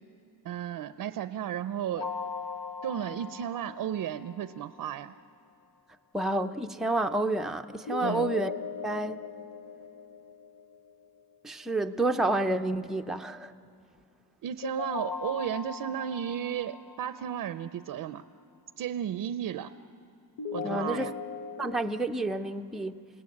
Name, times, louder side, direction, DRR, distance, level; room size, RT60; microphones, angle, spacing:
voice 1, 0.4-2.1 2.8-5.1 8.0-8.3 14.4-18.2 18.8-19.7 20.5-21.1, right 10 dB, 65° right, 11 dB, 0.6 m, -34 dB
sound 1, 2.0-4.9 7.9-10.9 14.6-17.8 20.4-21.9, left 5 dB, 65° left, 1.0 m, -39 dB
voice 2, 6.1-8.5 8.8-9.2 11.4-13.5 20.6-21.1 21.6-23.0, right 2 dB, ahead, 4 dB, 0.5 m, -29 dB
29.0 x 18.5 x 8.6 m, 2.8 s
cardioid pair, 135°, 37 cm